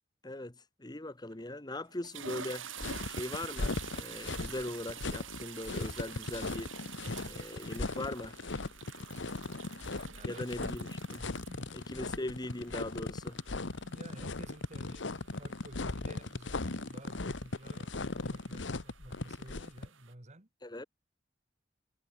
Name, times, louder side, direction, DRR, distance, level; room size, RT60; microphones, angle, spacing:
voice 1, 0.2-2.7 3.1-6.7 7.3-8.4 10.2-11.3 11.7-13.4 20.6-20.9, left 1 dB, 20° left, 1.6 m, -40 dB
sound 1, 1.3-1.5 1.9-20.1, right 8 dB, 85° right, 7.3 m, -49 dB
sound 2, 2.8-19.9, left 3 dB, 65° left, 1.2 m, -38 dB
voice 2, 10.1-10.7 11.5-12.2 13.8-20.5, right 1 dB, 35° right, 2.5 m, -52 dB
head